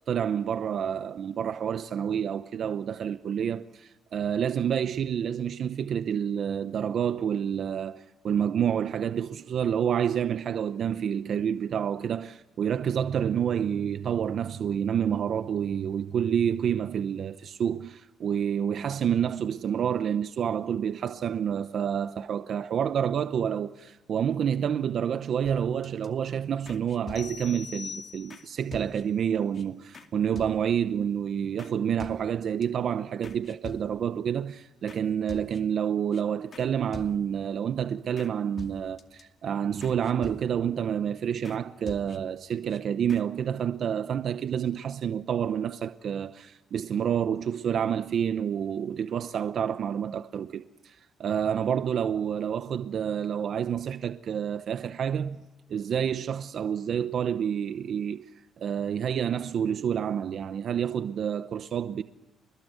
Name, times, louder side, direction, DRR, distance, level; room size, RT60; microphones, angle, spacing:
voice 1, 0.1-55.4 55.7-58.3 58.6-62.0, right 8 dB, 60° right, 0.8 m, -28 dB
sound 1, 25.4-26.1 26.7-27.6 28.3-28.4 28.7-29.2 29.5-29.6 29.9-30.1 30.4-30.9 31.6-31.7 32.0-32.7 33.2-34.2 34.9-35.0 35.3-35.8 36.1-36.2 36.5-36.7 36.9-37.5 38.2-38.3 38.6-39.2 39.8-40.8 41.5-41.6 41.9-42.4 42.7-42.8 43.1-43.2, left 5 dB, 45° left, 2.5 m, -46 dB
sound 2, 27.2-28.7, left 6 dB, 65° left, 1.4 m, -42 dB
29.0 x 21.0 x 9.2 m
cardioid pair, 90°, 0 cm